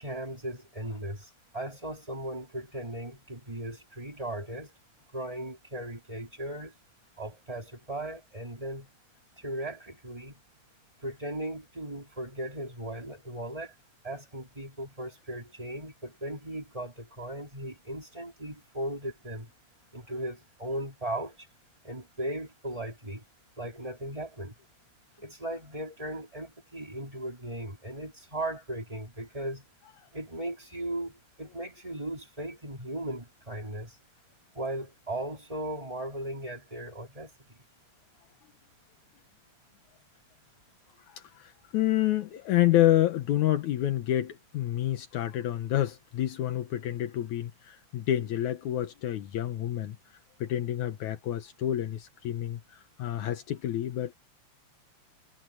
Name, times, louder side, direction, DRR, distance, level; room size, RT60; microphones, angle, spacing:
voice 1, 0.0-4.7 5.1-6.7 7.2-8.9 9.4-10.4 11.0-13.7 14.0-19.5 19.9-21.5 21.8-23.2 23.6-24.5 25.2-29.6 30.1-34.0 34.5-37.6, right 1 dB, 10° right, 4.0 m, -37 dB
voice 2, 41.0-54.1, left 13 dB, 75° left, 2.5 m, -28 dB
omnidirectional pair, 3.5 m